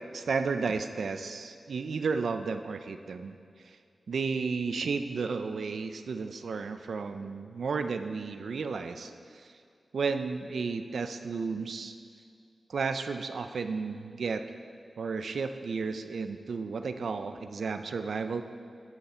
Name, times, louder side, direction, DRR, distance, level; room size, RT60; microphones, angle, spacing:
voice 1, 0.1-3.4 4.1-9.1 9.9-11.9 12.7-14.4 15.0-18.4, right 4 dB, 80° right, 9 dB, 0.5 m, -33 dB
13.0 x 8.2 x 4.3 m, 2.3 s
cardioid pair, 50°, 0 cm